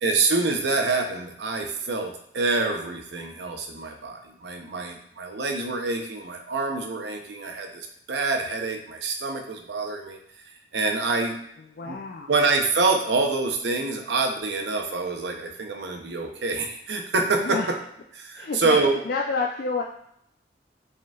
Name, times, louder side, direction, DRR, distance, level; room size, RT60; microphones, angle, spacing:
voice 1, 0.0-10.2 10.7-11.3 11.8-12.0 12.3-17.6 18.1-19.0, right 3 dB, 75° right, 4 dB, 0.6 m, -26 dB
voice 2, 11.7-12.3 17.4-17.7 18.3-19.8, left 4 dB, 55° left, 0 dB, 0.3 m, -29 dB
4.9 x 3.7 x 2.3 m, 0.73 s
head